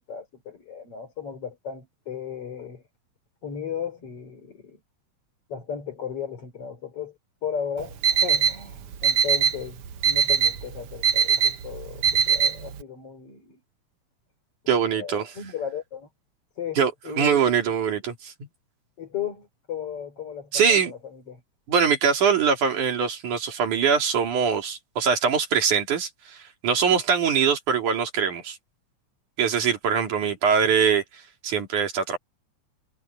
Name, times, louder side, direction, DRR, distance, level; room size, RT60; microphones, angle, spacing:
voice 1, 0.0-2.8 3.4-4.8 5.5-13.6 14.9-16.1 16.6-17.7 19.0-21.4, left 7 dB, 50° left, 4.4 m, -35 dB
Alarm, 7.8-12.8, right 7 dB, 60° right, 1.8 m, -22 dB
voice 2, 14.7-15.3 16.8-18.1 20.5-20.9 21.7-26.4 26.6-28.6 29.4-31.0 31.4-32.2, right 7 dB, 80° right, 4.4 m, -22 dB
omnidirectional pair, 3.4 m